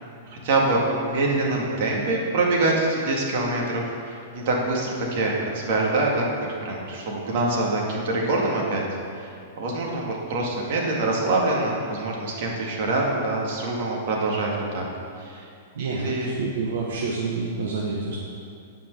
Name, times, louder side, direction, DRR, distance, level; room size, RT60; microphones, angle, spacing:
voice 1, 0.4-6.3 6.6-8.8 9.2-14.9 15.2-15.5 15.8-16.3, right 2 dB, 60° right, -2 dB, 2.3 m, -25 dB
voice 2, 15.7-18.2, right 4 dB, 75° right, -4 dB, 1.4 m, -28 dB
9.4 x 5.3 x 6.8 m, 2.5 s
hypercardioid pair, 135°, 0 cm